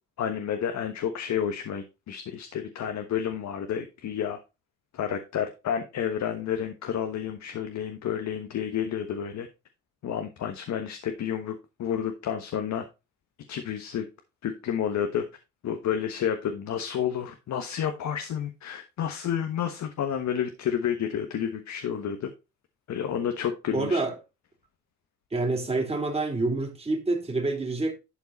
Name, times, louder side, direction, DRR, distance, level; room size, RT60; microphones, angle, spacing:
voice 1, 0.2-4.4 4.9-9.5 10.0-11.5 11.8-12.8 13.5-14.0 14.4-15.2 15.6-22.3 22.9-24.0, left 8 dB, 65° left, 1.3 m, -30 dB
voice 2, 23.7-24.1 25.3-27.9, right 2 dB, 20° right, 3.3 m, -27 dB
11.5 x 4.6 x 4.1 m
cardioid pair, 90°, 30 cm